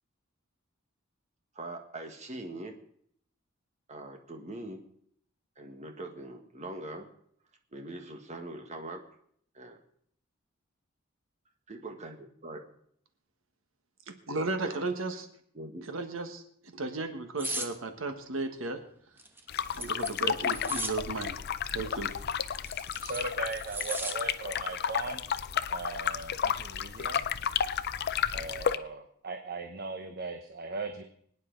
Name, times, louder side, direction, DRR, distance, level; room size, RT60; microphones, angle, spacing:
voice 1, 1.5-2.7 3.9-4.8 5.6-7.1 7.7-9.0 9.5-9.8 11.7-12.6 14.6-14.9 15.5-15.8, right 2 dB, 35° right, 4 dB, 1.6 m, -42 dB
voice 2, 14.3-15.2 15.9-18.8 19.7-21.3 21.7-22.1, right 3 dB, 70° right, 7 dB, 1.4 m, -34 dB
sound 1, 17.4-17.7 19.2-21.0 22.4-24.2 24.6-24.8, right 1 dB, 10° right, 1.2 m, -37 dB
sound 2, 19.5-28.8, left 8 dB, 50° left, 0.5 m, -32 dB
voice 3, 23.0-25.3 25.7-27.2 28.3-31.0, right 3 dB, 50° right, 5 dB, 1.0 m, -38 dB
24.5 x 9.5 x 3.9 m, 0.64 s
head